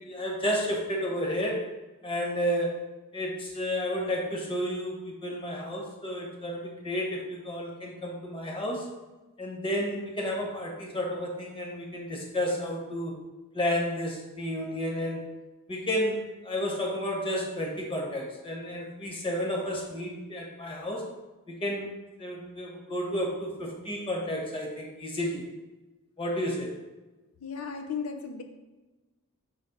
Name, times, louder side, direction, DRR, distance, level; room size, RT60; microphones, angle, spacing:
voice 1, 0.0-1.6 2.0-2.8 3.1-8.9 9.4-13.2 13.5-15.2 15.7-21.0 21.5-21.9 22.2-25.4 26.2-26.7, equal, 25° left, -1 dB, 1.2 m, -31 dB
voice 2, 27.4-28.4, left 6 dB, 90° left, 6 dB, 0.5 m, -35 dB
6.1 x 3.2 x 5.4 m, 1.1 s
head